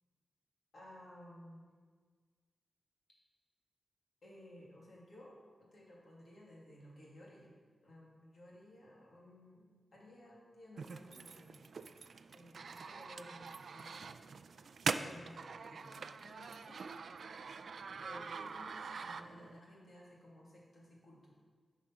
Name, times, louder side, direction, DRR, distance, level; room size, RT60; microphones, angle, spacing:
voice 1, 0.7-1.6 4.2-7.5 7.8-11.6 12.3-14.1 14.9-17.0 18.0-21.3, left 1 dB, 55° left, -4 dB, 2.3 m, -56 dB
sound 1, 10.8-19.6, right 5 dB, 65° right, 0.3 m, -44 dB
8.3 x 5.3 x 5.8 m, 1.5 s
wide cardioid pair, 155°, 0 cm